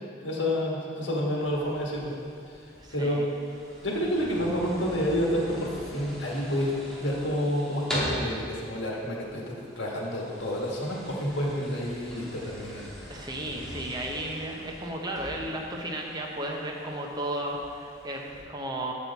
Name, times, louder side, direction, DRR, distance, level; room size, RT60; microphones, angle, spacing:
voice 1, 0.2-2.1 2.5-3.2 3.8-6.7 7.0-12.9, equal, 85° left, -2 dB, 1.3 m, -29 dB
sound 1, 1.4-18.4, equal, 5° left, 1.4 m, -42 dB
voice 2, 2.8-3.3 13.1-18.9, right 1 dB, 25° right, 0 dB, 0.7 m, -34 dB
7.4 x 6.0 x 4.0 m, 2.3 s
head